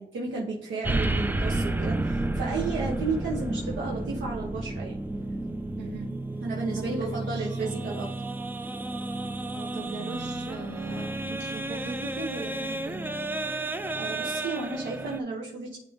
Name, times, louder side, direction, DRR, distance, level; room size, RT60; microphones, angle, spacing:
voice 1, 0.0-5.0 6.4-8.1 13.9-15.8, right 3 dB, 85° right, -3 dB, 1.2 m, -33 dB
sound 1, 0.8-15.2, right 2 dB, 10° right, 0.4 m, -31 dB
voice 2, 5.8-6.2 6.7-7.7 9.5-13.1, right 3 dB, 65° right, 4 dB, 0.9 m, -39 dB
10.0 x 3.4 x 3.7 m, 0.83 s
cardioid pair, 105°, 19 cm